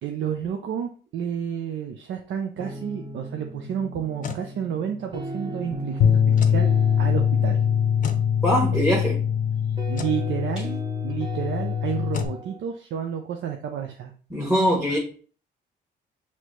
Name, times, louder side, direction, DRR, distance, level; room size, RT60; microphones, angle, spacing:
voice 1, 0.0-6.7 7.0-7.6 8.7-9.0 9.9-14.1 14.9-15.0, right 8 dB, 70° right, 4 dB, 0.6 m, -31 dB
sound 1, 2.6-12.6, right 1 dB, 25° right, 0.9 m, -37 dB
sound 2, 3.9-4.5 6.3-6.6 8.0-8.3 9.9-10.2 12.1-12.4, left 5 dB, 40° left, 0.6 m, -33 dB
Bass guitar, 6.0-12.3, left 8 dB, 80° left, 0.6 m, -23 dB
voice 2, 8.4-9.2 14.3-15.0, equal, 5° right, -4 dB, 1.2 m, -22 dB
6.0 x 2.8 x 3.0 m, 0.42 s
cardioid pair, 90°, 20 cm